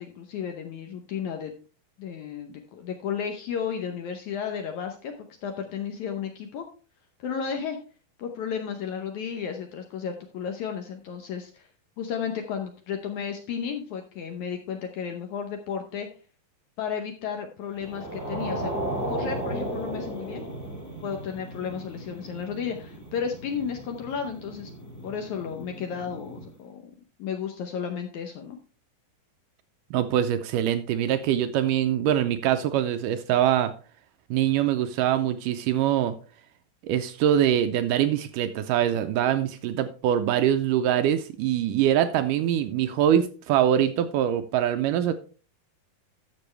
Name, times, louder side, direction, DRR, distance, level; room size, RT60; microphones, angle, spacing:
voice 1, 0.0-1.5 2.0-5.1 5.4-6.7 7.2-7.8 8.2-11.7 12.0-16.1 16.8-18.7 19.1-20.5 21.0-24.7 25.0-26.9 27.2-28.6, left 7 dB, 70° left, 4 dB, 1.9 m, -33 dB
sound 1, 17.8-26.5, right 1 dB, 10° left, 0.9 m, -35 dB
voice 2, 29.9-33.7 34.3-36.1 36.8-45.1, right 10 dB, 80° right, 10 dB, 2.0 m, -23 dB
12.0 x 6.9 x 3.3 m, 0.37 s
omnidirectional pair, 4.2 m